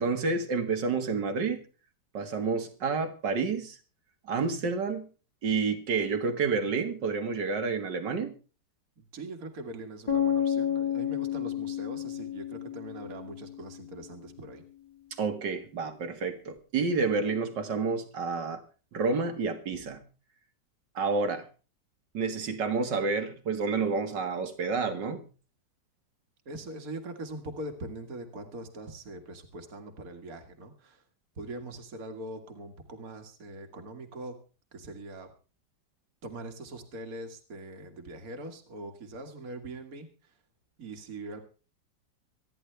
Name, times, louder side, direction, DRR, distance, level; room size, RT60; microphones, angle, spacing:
voice 1, 0.0-1.6 2.1-3.8 4.3-5.1 5.4-8.3 15.2-18.6 18.9-20.0 21.0-21.5 22.1-25.2, right 4 dB, 75° right, 7 dB, 2.4 m, -29 dB
voice 2, 9.0-14.6 26.5-31.0 31.4-34.4 34.7-35.3 36.2-40.3 40.8-41.4, right 2 dB, 50° right, 5 dB, 2.3 m, -42 dB
sound 1, 10.1-14.0, left 9 dB, 20° left, 3.1 m, -31 dB
25.5 x 10.5 x 3.4 m, 0.35 s
omnidirectional pair, 1.9 m